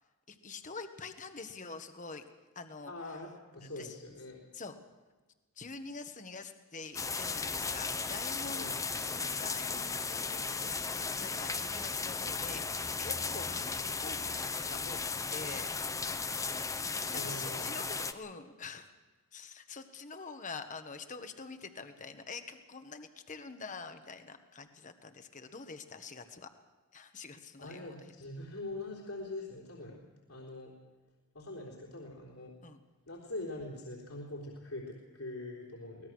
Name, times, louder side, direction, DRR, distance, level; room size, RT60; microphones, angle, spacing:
voice 1, 0.3-2.3 2.5-3.2 3.6-3.9 4.5-4.8 5.6-8.7 9.1-15.0 15.3-15.7 17.0-18.9 19.3-26.5 26.9-28.0 32.6-32.8, left 4 dB, 35° left, 7 dB, 1.4 m, -46 dB
voice 2, 2.9-4.4 8.5-8.8 17.1-17.8 27.6-30.0 30.3-30.8 31.3-32.5 33.1-36.1, left 2 dB, 70° left, -3 dB, 3.7 m, -43 dB
sound 1, 6.9-18.1, left 4 dB, 15° left, 0.7 m, -35 dB
23.5 x 19.0 x 6.3 m, 1.2 s
head